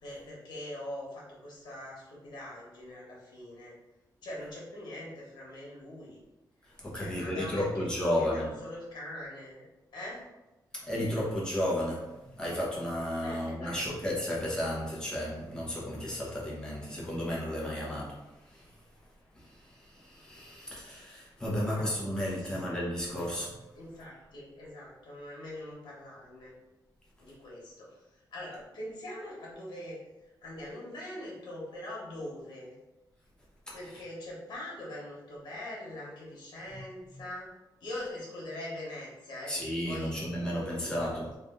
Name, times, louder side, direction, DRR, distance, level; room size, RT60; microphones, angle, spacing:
voice 1, 0.0-3.7 4.2-6.2 6.9-9.7 9.9-10.3 13.2-13.9 21.7-22.0 22.4-22.5 23.1-23.3 23.7-26.5 27.2-30.0 30.4-32.7 33.7-37.5 37.8-40.2 40.8-41.1, left 1 dB, 70° left, -4 dB, 1.3 m, -43 dB
voice 2, 6.8-8.5 10.7-18.7 19.3-23.5 33.7-33.8 39.5-41.4, left 1 dB, 10° left, -5 dB, 1.0 m, -33 dB
3.3 x 2.5 x 3.7 m, 1.0 s
wide cardioid pair, 170°, 8 cm